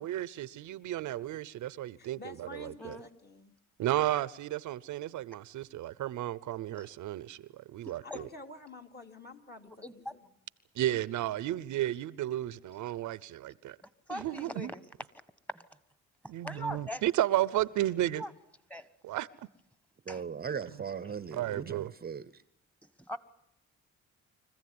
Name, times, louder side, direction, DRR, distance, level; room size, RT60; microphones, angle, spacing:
voice 1, 0.0-3.0 3.8-8.3 10.7-13.8 14.1-14.7 16.3-18.2 19.0-19.3 21.3-21.9, right 14 dB, 75° right, 0.8 m, -33 dB
voice 2, 2.0-3.6 8.0-10.3 13.0-13.1 14.3-14.5, left 3 dB, 35° left, 2.8 m, -50 dB
voice 3, 14.1-14.8 15.5-15.6 16.4-17.0 18.1-18.3 18.7-18.9 20.1-20.2 23.0-23.2, equal, 5° left, 1.7 m, -40 dB
voice 4, 20.0-22.4, right 6 dB, 30° right, 0.8 m, -38 dB
25.0 x 15.5 x 9.6 m
cardioid pair, 90°, 30 cm